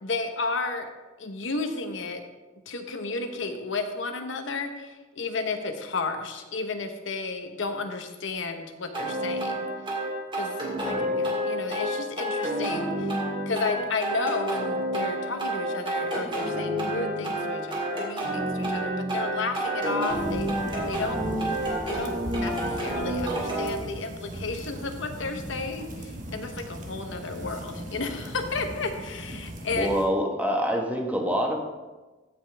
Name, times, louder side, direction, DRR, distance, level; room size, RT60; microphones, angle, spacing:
voice 1, 0.0-0.9 1.2-2.2 2.7-9.6 10.3-10.5 10.9-13.2 13.5-20.5 20.9-21.2 21.8-30.0, left 3 dB, 75° left, 6 dB, 0.9 m, -32 dB
sound 1, 8.9-23.7, right 1 dB, 25° right, 2.1 m, -29 dB
voice 2, 10.7-11.2 29.8-31.6, equal, 10° right, 1 dB, 1.1 m, -26 dB
sound 2, 20.1-30.0, equal, 40° right, 1.2 m, -38 dB
15.5 x 5.4 x 3.4 m, 1.2 s
head